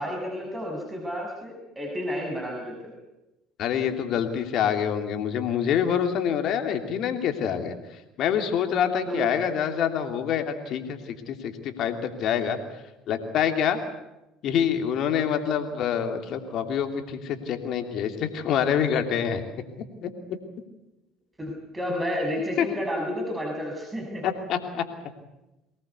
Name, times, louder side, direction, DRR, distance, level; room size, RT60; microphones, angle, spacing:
voice 1, 0.0-2.9 9.1-9.2 21.4-24.2, equal, 20° right, 0 dB, 6.3 m, -31 dB
voice 2, 3.6-12.6 13.1-13.8 14.4-19.4 20.0-20.4 22.6-22.7 24.2-24.8, left 8 dB, 60° left, 6 dB, 2.9 m, -26 dB
23.5 x 19.0 x 8.3 m, 0.95 s
hypercardioid pair, 65°, 0 cm